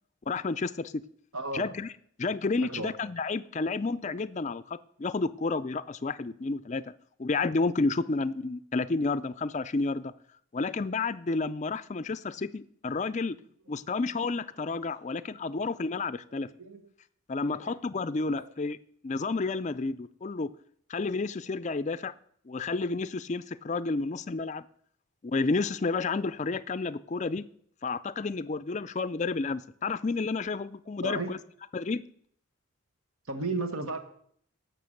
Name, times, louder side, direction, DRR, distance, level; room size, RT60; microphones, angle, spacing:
voice 1, 0.3-1.0 1.5-1.9 2.2-6.9 7.2-10.1 10.5-13.4 13.7-16.5 17.3-18.8 19.0-20.5 20.9-22.1 22.5-24.7 25.2-27.4 27.8-31.4 31.7-32.0, left 3 dB, 35° left, 14 dB, 0.4 m, -31 dB
voice 2, 1.3-1.7 2.6-2.9 16.6-16.8 17.6-17.7 18.4-18.5 31.0-31.3 33.3-34.0, right 2 dB, 75° right, 7 dB, 1.5 m, -33 dB
16.0 x 6.0 x 6.5 m, 0.64 s
head